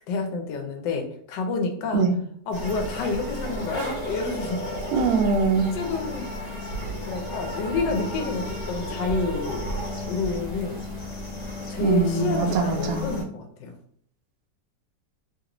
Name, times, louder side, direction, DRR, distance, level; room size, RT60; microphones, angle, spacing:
voice 1, 0.1-2.1 2.5-4.6 5.7-6.3 6.8-10.8 11.7-13.8, left 4 dB, 80° left, 4 dB, 1.3 m, -29 dB
sound 1, 2.5-13.2, equal, 50° left, 1.3 m, -33 dB
voice 2, 4.9-5.7 11.8-13.1, right 5 dB, 70° right, 4 dB, 0.9 m, -22 dB
3.2 x 2.5 x 2.9 m, 0.63 s
omnidirectional pair, 1.9 m